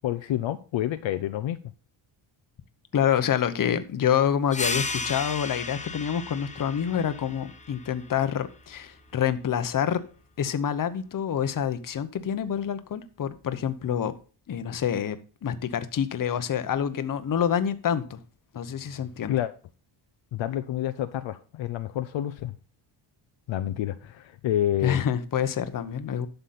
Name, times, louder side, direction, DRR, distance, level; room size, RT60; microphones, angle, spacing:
voice 1, 0.0-1.6 19.3-19.5 20.3-22.5 23.5-25.0, left 12 dB, 70° left, 0.7 m, -28 dB
voice 2, 2.9-10.0 10.4-14.1 14.5-15.2 15.4-18.2 18.5-19.3 24.8-26.3, left 8 dB, 40° left, 0.9 m, -27 dB
sound 1, 4.5-9.7, left 4 dB, 15° left, 0.7 m, -35 dB
11.5 x 6.9 x 4.2 m
cardioid pair, 145°, 48 cm